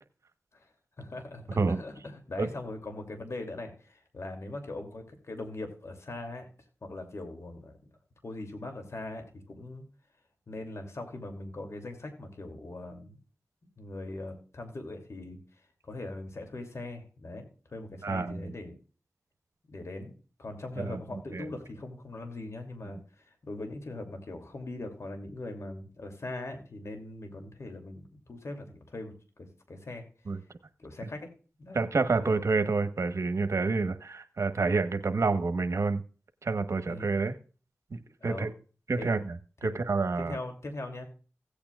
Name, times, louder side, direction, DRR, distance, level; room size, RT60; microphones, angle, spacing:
voice 1, 1.0-1.4 1.7-6.5 6.8-7.8 8.2-9.8 10.5-13.2 13.8-15.4 15.8-17.4 17.7-18.7 19.7-20.1 20.4-30.0 30.8-31.3 31.6-31.8 32.1-32.4 36.9-37.1 38.2-38.5 39.0-39.1 39.6-39.7 40.2-41.1, left 2 dB, 65° left, 5 dB, 2.7 m, -41 dB
voice 2, 18.0-18.5 20.8-21.0 21.3-21.5 30.3-30.4 31.7-36.0 36.4-37.3 37.9-38.5 38.9-39.3 39.6-40.4, right 4 dB, 70° right, 10 dB, 1.1 m, -28 dB
16.5 x 8.7 x 2.4 m, 0.37 s
cardioid pair, 40°, 5 cm